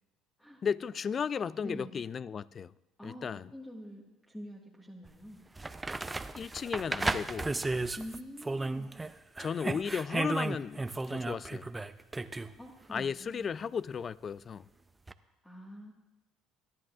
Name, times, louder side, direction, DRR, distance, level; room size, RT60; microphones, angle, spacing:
voice 1, 0.6-2.7 3.0-3.5 6.4-7.5 9.4-11.7 12.9-14.7, left 6 dB, 40° left, 0.3 m, -35 dB
voice 2, 1.6-2.0 3.0-5.4 8.0-8.9 12.5-13.5 15.2-15.9, equal, 10° left, 1.7 m, -46 dB
sound 1, 5.1-5.2 5.6-9.1 9.4-12.5 15.1-15.2, right 2 dB, 15° right, 0.5 m, -34 dB
25.5 x 10.5 x 2.5 m
hypercardioid pair, 70°, 0 cm